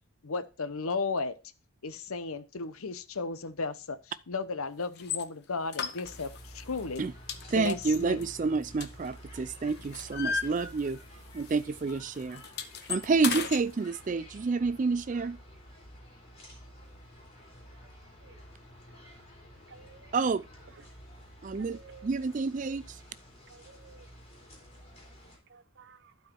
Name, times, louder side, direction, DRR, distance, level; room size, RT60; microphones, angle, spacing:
voice 1, 0.2-1.3 1.8-4.0 4.3-7.0 7.5-8.3, left 4 dB, 80° left, 0.8 m, -34 dB
sound 1, 5.0-5.2 5.7-6.5 6.8-7.0 7.3-9.3 9.7-11.1 11.4-11.6 11.9-13.6, left 6 dB, 50° left, 0.9 m, -35 dB
sound 2, 6.0-25.4, equal, 30° left, 3.6 m, -51 dB
voice 2, 7.5-11.0 11.3-12.4 12.9-15.4 20.1-20.4 21.4-23.0, right 4 dB, 35° right, 0.3 m, -29 dB
voice 3, 19.7-20.1 21.6-22.1 23.5-24.1 25.5-26.1, right 5 dB, 55° right, 0.8 m, -54 dB
12.0 x 4.7 x 4.5 m
head